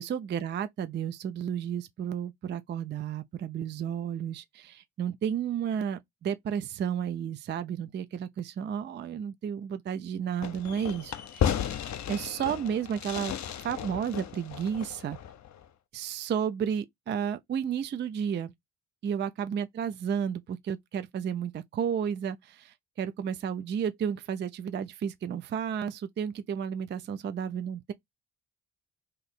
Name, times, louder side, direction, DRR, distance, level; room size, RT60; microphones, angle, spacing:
voice 1, 0.0-11.1 11.4-11.8 12.1-13.3 13.6-15.2 15.9-18.5 19.0-27.9, right 8 dB, 30° right, 0.4 m, -32 dB
Fireworks, 10.4-15.6, left 9 dB, 45° left, 0.6 m, -34 dB
2.6 x 2.5 x 4.1 m
hypercardioid pair, 50°, 40 cm